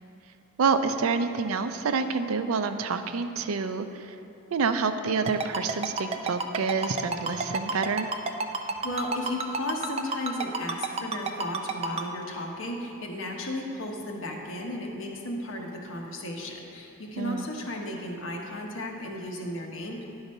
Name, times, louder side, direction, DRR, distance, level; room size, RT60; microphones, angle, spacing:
voice 1, 0.6-4.1 4.5-8.1 17.2-17.5, right 5 dB, 90° right, 9 dB, 0.5 m, -28 dB
Ringtone, 5.3-12.0, right 4 dB, 30° right, 0.4 m, -29 dB
voice 2, 8.6-20.0, left 1 dB, 65° left, 0 dB, 1.0 m, -34 dB
10.5 x 4.0 x 5.4 m, 2.8 s
head